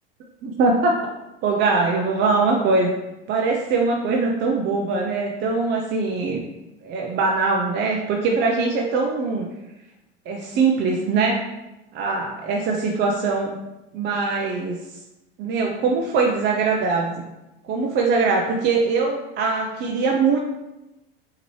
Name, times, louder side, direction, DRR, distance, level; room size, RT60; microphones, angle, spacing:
voice 1, 0.4-0.9 1.4-3.0 3.3-6.4 6.8-9.5 10.3-11.5 12.0-13.6 13.9-14.8 15.4-17.2 17.6-20.4, right 4 dB, 35° right, 0 dB, 0.5 m, -22 dB
5.7 x 2.8 x 3.1 m, 0.98 s
supercardioid pair, 125°, 30 cm